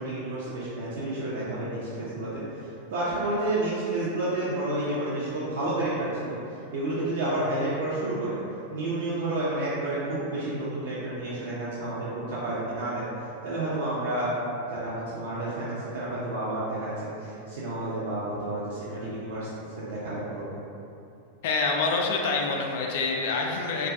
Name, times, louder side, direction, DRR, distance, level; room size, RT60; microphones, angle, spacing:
voice 1, 0.0-6.4 6.7-8.4 8.7-13.1 13.4-14.3 14.7-19.5 19.8-20.6, right 2 dB, 55° right, -9 dB, 0.4 m, -30 dB
voice 2, 21.4-23.9, left 3 dB, 55° left, 0 dB, 0.3 m, -26 dB
2.5 x 2.3 x 2.4 m, 2.6 s
figure-of-eight pair, 90°, 0 cm